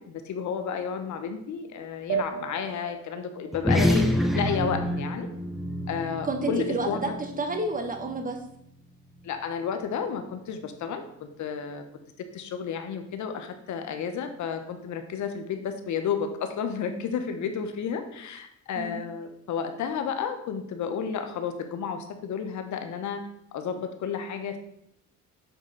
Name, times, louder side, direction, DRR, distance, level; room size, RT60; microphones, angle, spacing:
voice 1, 0.0-5.3 5.9-7.0 9.2-11.8 12.2-24.6, left 7 dB, 75° left, 7 dB, 1.0 m, -32 dB
sound 1, 2.1-5.1, right 8 dB, 50° right, 0.6 m, -36 dB
sound 2, 3.5-8.3, left 1 dB, ahead, 0.9 m, -28 dB
voice 2, 6.2-8.4 18.8-19.0, right 2 dB, 25° right, 4 dB, 1.4 m, -30 dB
7.2 x 3.6 x 5.6 m, 0.76 s
cardioid pair, 90°, 30 cm